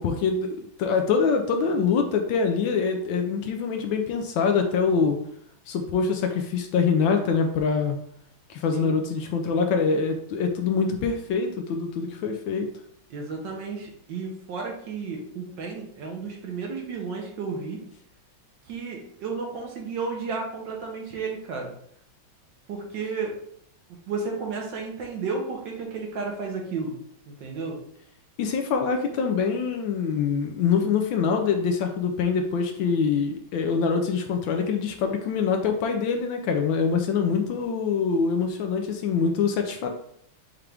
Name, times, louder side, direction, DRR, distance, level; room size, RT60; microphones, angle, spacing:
voice 1, 0.0-5.2 5.7-8.0 8.5-12.7 28.4-39.9, left 5 dB, 75° left, 4 dB, 1.2 m, -24 dB
voice 2, 13.1-17.8 18.7-21.7 22.7-23.3 24.1-26.9 27.3-27.8, right 4 dB, 65° right, 0 dB, 1.5 m, -32 dB
5.8 x 2.5 x 3.4 m, 0.69 s
omnidirectional pair, 2.3 m